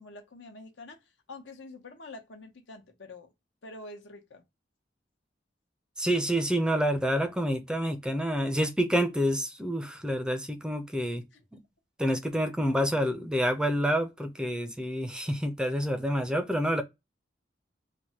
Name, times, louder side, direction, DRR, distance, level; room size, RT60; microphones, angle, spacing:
voice 1, 0.0-3.3 3.6-4.4 11.3-11.4, left 2 dB, 90° left, 0.9 m, -46 dB
voice 2, 6.0-11.2 12.0-16.8, equal, 5° right, 0.4 m, -28 dB
3.3 x 2.2 x 2.7 m
head